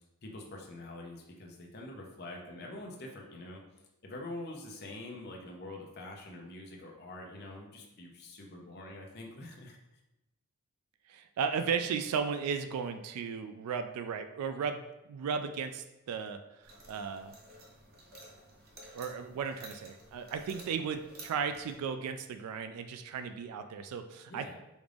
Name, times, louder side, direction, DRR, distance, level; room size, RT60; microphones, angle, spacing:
voice 1, 0.2-3.6 4.0-9.8 24.3-24.6, left 2 dB, 45° left, 0 dB, 0.7 m, -45 dB
voice 2, 11.1-14.8 15.1-17.3 18.9-24.6, right 6 dB, 85° right, 12 dB, 0.3 m, -35 dB
sound 1, 16.6-21.7, right 1 dB, 40° right, 0.8 m, -53 dB
5.1 x 2.4 x 3.4 m, 0.96 s
head